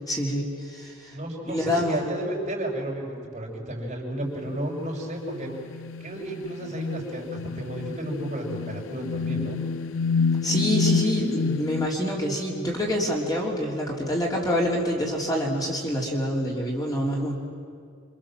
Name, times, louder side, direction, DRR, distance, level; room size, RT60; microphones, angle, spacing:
voice 1, 0.1-1.1 1.5-2.0 10.4-17.3, equal, 20° left, -2 dB, 3.7 m, -26 dB
voice 2, 1.1-5.5 6.0-9.6, right 1 dB, 35° right, -2 dB, 6.1 m, -32 dB
sound 1, 4.2-4.7 5.4-11.9, left 5 dB, 75° left, 0.6 m, -28 dB
28.5 x 26.0 x 7.6 m, 2.3 s
head